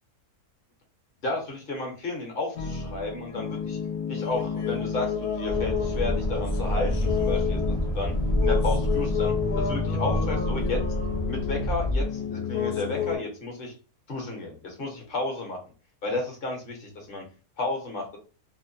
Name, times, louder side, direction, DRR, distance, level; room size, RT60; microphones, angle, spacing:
voice 1, 1.2-3.8 4.1-7.6 7.9-8.1 8.4-10.8 11.3-13.7 14.1-15.6 16.0-17.2 17.6-18.2, left 2 dB, 45° left, 0 dB, 0.9 m, -32 dB
sound 1, 2.6-13.2, left 6 dB, 85° left, 1.1 m, -30 dB
Accelerating revving vroom, 5.5-12.1, left 1 dB, 30° right, 0.6 m, -28 dB
2.8 x 2.1 x 2.6 m, 0.35 s
omnidirectional pair, 1.6 m